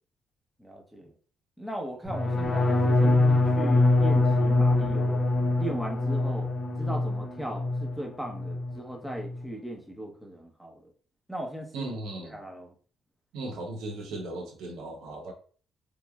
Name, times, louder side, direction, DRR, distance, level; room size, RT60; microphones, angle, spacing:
voice 1, 0.6-1.1 1.6-5.2 5.6-6.5 6.8-10.9 11.3-11.9 12.2-12.7, right 1 dB, 5° right, 1 dB, 0.7 m, -37 dB
sound 1, 2.1-8.0 8.3-8.8 9.1-9.5, left 2 dB, 50° left, 0.6 m, -24 dB
voice 2, 11.7-12.4 13.3-15.3, right 2 dB, 85° right, 1 dB, 0.7 m, -37 dB
3.0 x 2.3 x 2.2 m, 0.41 s
cardioid pair, 90°, 0 cm